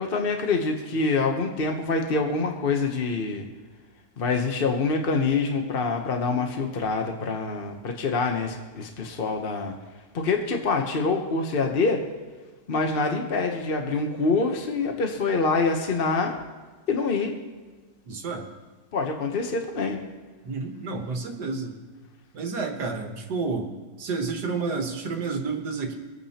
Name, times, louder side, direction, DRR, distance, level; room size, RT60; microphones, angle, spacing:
voice 1, 0.0-3.5 4.2-9.7 10.1-12.0 12.7-16.4 16.9-17.3 18.9-20.0, left 4 dB, 40° left, 3 dB, 0.9 m, -25 dB
voice 2, 18.1-18.5 20.4-21.8 22.3-23.7 24.0-25.9, right 4 dB, 70° right, 3 dB, 1.9 m, -30 dB
26.0 x 8.8 x 2.9 m, 1.3 s
omnidirectional pair, 1.9 m